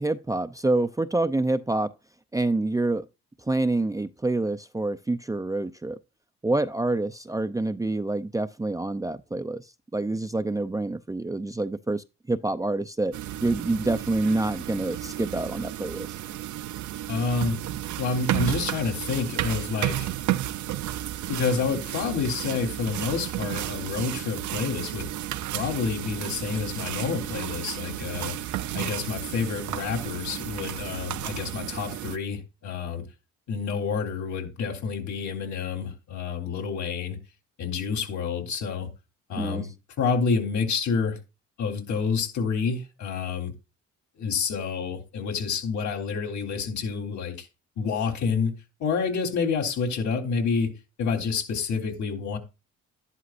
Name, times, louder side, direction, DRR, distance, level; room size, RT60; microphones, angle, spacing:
voice 1, 0.0-1.9 2.3-3.1 3.4-6.0 6.4-9.7 9.9-13.1 13.4-16.1 39.4-39.7, right 2 dB, 10° right, 0.5 m, -27 dB
sound 1, 13.1-32.2, right 13 dB, 75° right, 0.8 m, -32 dB
voice 2, 17.1-17.6 18.0-20.1 21.3-25.1 25.5-28.4 28.7-33.0 33.5-37.2 37.6-38.9 39.3-39.7 40.0-41.2 41.6-43.5 44.2-47.5 47.8-50.7 51.0-52.4, left 5 dB, 70° left, 3.8 m, -28 dB
12.0 x 11.0 x 2.5 m
cardioid pair, 90°, 30 cm